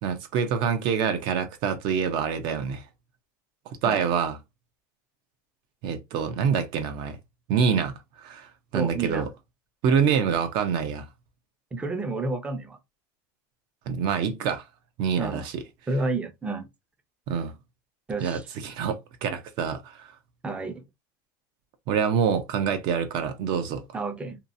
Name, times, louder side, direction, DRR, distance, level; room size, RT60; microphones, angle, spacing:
voice 1, 0.0-2.8 3.7-4.4 5.8-7.2 7.5-9.3 9.8-11.1 13.9-14.6 15.0-15.5 17.3-17.5 18.2-20.1 21.9-23.8, right 7 dB, 50° right, 0.6 m, -26 dB
voice 2, 8.7-9.3 11.7-12.8 15.2-15.4 15.9-16.7 18.1-18.4 20.4-20.8 23.9-24.4, right 3 dB, 10° right, 0.5 m, -30 dB
2.8 x 2.3 x 2.6 m
supercardioid pair, 140°, 10 cm